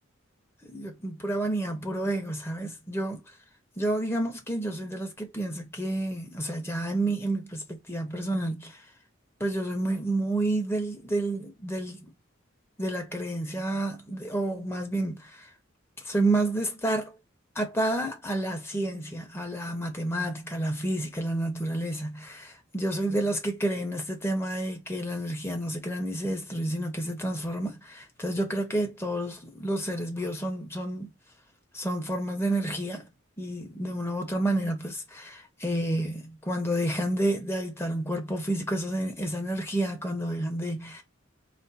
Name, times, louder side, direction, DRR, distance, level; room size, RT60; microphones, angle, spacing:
voice 1, 0.6-3.2 3.8-8.8 9.4-12.1 12.8-15.3 16.0-17.1 17.5-31.1 31.7-33.1 33.4-41.0, right 1 dB, 10° left, 1.2 m, -30 dB
4.3 x 2.2 x 4.2 m
head